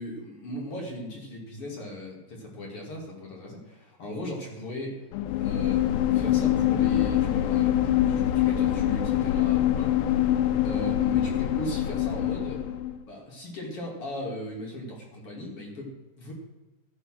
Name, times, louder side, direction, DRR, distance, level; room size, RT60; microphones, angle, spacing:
voice 1, 0.0-5.0 5.4-5.8 6.1-12.6 13.1-16.3, equal, 40° left, -2 dB, 2.5 m, -38 dB
sound 1, 5.1-12.9, left 12 dB, 85° left, 2.4 m, -24 dB
14.0 x 6.6 x 6.2 m, 1.1 s
omnidirectional pair, 5.5 m